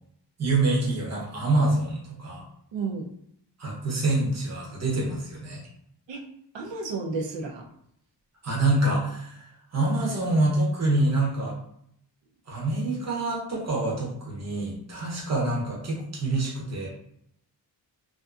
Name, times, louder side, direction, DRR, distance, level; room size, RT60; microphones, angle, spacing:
voice 1, 0.4-2.4 3.6-5.6 8.4-9.5 9.7-11.6 12.5-16.9, right 2 dB, 40° right, -4 dB, 0.8 m, -26 dB
voice 2, 2.7-3.1 6.1-6.2 6.5-7.7, right 4 dB, 80° right, 0 dB, 0.7 m, -32 dB
2.5 x 2.5 x 2.4 m, 0.71 s
wide cardioid pair, 155°, 43 cm